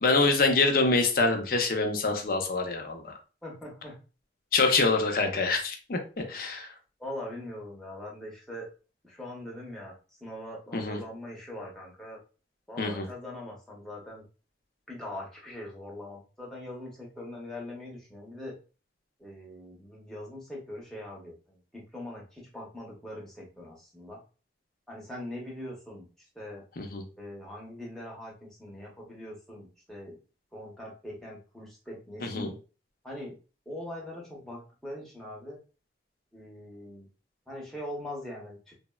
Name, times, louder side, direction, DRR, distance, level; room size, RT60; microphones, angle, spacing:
voice 1, 0.0-3.1 4.5-6.7 10.7-11.0 12.8-13.1 26.8-27.0 32.2-32.5, left 3 dB, 55° left, 4 dB, 0.5 m, -25 dB
voice 2, 3.4-4.0 7.0-8.7 9.0-9.9 10.2-12.2 12.7-14.2 14.9-18.5 19.2-24.2 24.9-26.0 26.4-26.6 27.2-30.2 30.5-32.6 33.0-33.4 33.7-35.6 36.3-37.1 37.5-38.7, left 1 dB, 5° left, -3 dB, 0.7 m, -42 dB
3.4 x 2.0 x 2.2 m, 0.35 s
head